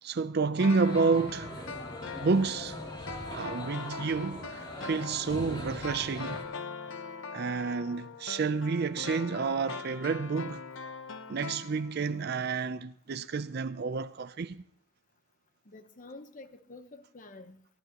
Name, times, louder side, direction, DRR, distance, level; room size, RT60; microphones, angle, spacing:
voice 1, 0.0-1.5 2.2-2.8 3.2-6.4 7.3-10.6 11.3-14.6, right 4 dB, 55° right, 0.5 m, -30 dB
sound 1, 0.6-12.2 12.5-12.6, left 4 dB, 70° left, 0.8 m, -42 dB
sound 2, 0.7-6.4, equal, 25° left, 2.8 m, -42 dB
voice 2, 15.7-17.7, left 2 dB, 40° left, 0.9 m, -49 dB
23.0 x 14.5 x 2.9 m
head